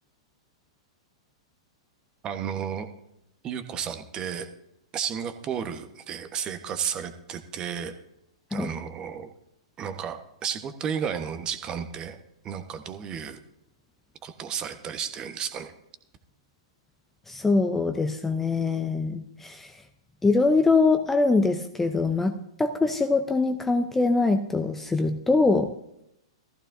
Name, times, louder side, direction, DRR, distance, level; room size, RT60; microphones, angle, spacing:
voice 1, 2.2-2.9 3.4-4.5 4.9-7.9 8.5-9.3 9.8-12.2 12.4-13.4 14.2-15.7, right 8 dB, 30° right, 8 dB, 1.2 m, -33 dB
voice 2, 17.3-19.7 20.2-25.7, left 3 dB, 10° left, 7 dB, 0.7 m, -23 dB
14.5 x 14.5 x 2.7 m, 0.81 s
hypercardioid pair, 110°, 3 cm